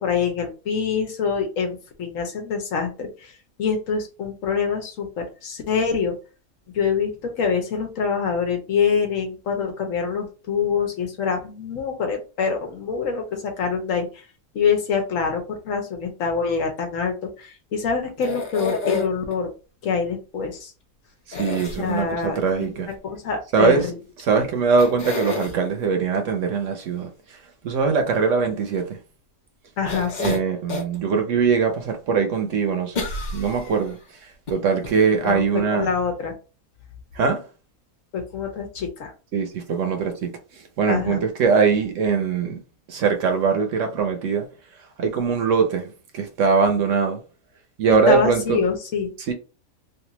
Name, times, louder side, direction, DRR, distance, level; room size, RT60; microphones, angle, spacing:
voice 1, 0.0-3.1 3.6-6.1 6.7-14.1 14.5-19.5 19.8-20.7 21.8-22.8 23.1-23.9 24.3-24.5 29.8-30.4 35.2-36.3 38.1-39.1 40.9-41.2 48.1-49.1, left 6 dB, 70° left, 1.1 m, -25 dB
sound 1, 18.2-19.4 21.3-22.3 24.2-24.3 24.8-25.6 29.9-31.0 31.5-31.6 33.0-33.9 34.5-34.6 34.8-34.9, left 4 dB, 40° left, 0.7 m, -29 dB
voice 2, 21.3-22.9 23.5-23.9 24.2-27.1 27.6-29.0 30.2-34.0 34.5-35.9 37.1-37.4 39.3-42.6 42.9-44.5 45.0-47.2 47.8-48.6 49.3-49.4, right 5 dB, 65° right, 1.0 m, -22 dB
3.2 x 2.5 x 2.9 m
omnidirectional pair, 1.5 m